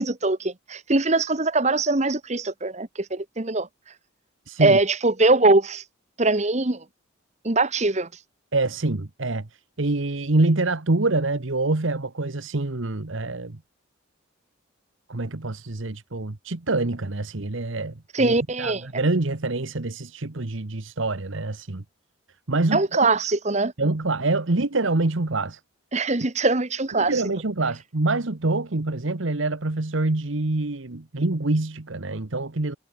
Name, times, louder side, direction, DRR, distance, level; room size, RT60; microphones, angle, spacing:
voice 1, 0.0-3.7 4.6-5.8 6.2-6.8 7.4-8.1 18.1-18.9 22.7-23.7 25.9-27.1, right 2 dB, 35° right, 1.2 m, -22 dB
voice 2, 4.5-4.8 8.5-9.5 9.8-13.6 15.1-21.8 22.5-22.8 23.8-25.6 27.0-32.8, right 2 dB, 70° right, 1.2 m, -25 dB
head